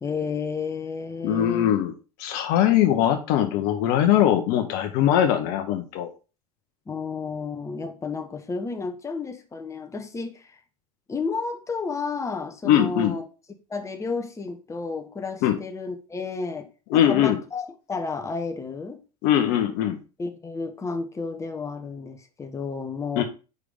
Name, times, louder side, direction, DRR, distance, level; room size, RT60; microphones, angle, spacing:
voice 1, 0.0-1.7 6.9-10.6 11.1-13.2 13.7-19.0 20.2-23.2, left 4 dB, 15° left, 5 dB, 1.1 m, -32 dB
voice 2, 1.2-1.9 2.2-6.1 12.6-13.2 15.4-15.6 16.9-17.4 19.2-20.0 23.2-23.3, left 11 dB, 50° left, 6 dB, 1.0 m, -21 dB
5.3 x 4.9 x 5.0 m, 0.33 s
figure-of-eight pair, 80°, 20 cm